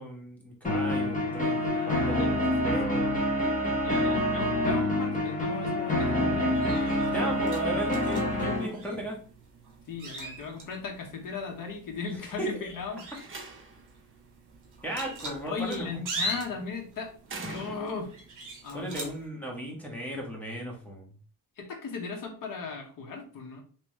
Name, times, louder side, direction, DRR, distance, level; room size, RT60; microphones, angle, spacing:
voice 1, 0.0-3.1 4.4-4.7 7.1-9.2 12.4-12.7 14.8-16.1 18.7-21.1, right 1 dB, 5° left, -1 dB, 1.2 m, -36 dB
sound 1, 0.6-8.7, left 1 dB, 20° left, 1.3 m, -27 dB
voice 2, 1.7-2.7 3.0-3.1 3.8-7.9 9.9-13.0 15.4-17.1 17.5-18.1 18.6-19.0 21.6-23.6, left 5 dB, 65° left, 1 dB, 1.1 m, -37 dB
sound 2, 6.5-19.3, right 1 dB, 60° right, 1.2 m, -42 dB
Slam, 12.9-14.0 15.5-15.9 17.2-18.2, right 2 dB, 35° right, 0.9 m, -42 dB
3.5 x 3.0 x 3.0 m, 0.43 s
cardioid pair, 130°, 35 cm